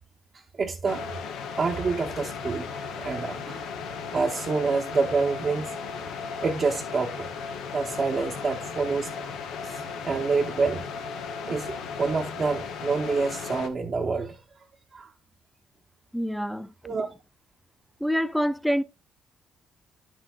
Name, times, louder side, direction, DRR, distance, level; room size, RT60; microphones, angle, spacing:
voice 1, 0.6-1.2 1.6-3.6 4.1-5.8 6.4-7.3 7.7-9.4 9.6-10.8 11.5-14.4 14.9-15.1 16.8-17.1, right 4 dB, 45° right, 0.7 m, -27 dB
sound 1, 0.9-13.7, left 5 dB, 85° left, 0.8 m, -36 dB
voice 2, 16.1-16.7 18.0-18.8, equal, ahead, 0.5 m, -26 dB
9.7 x 6.1 x 2.3 m
cardioid pair, 90°, 0 cm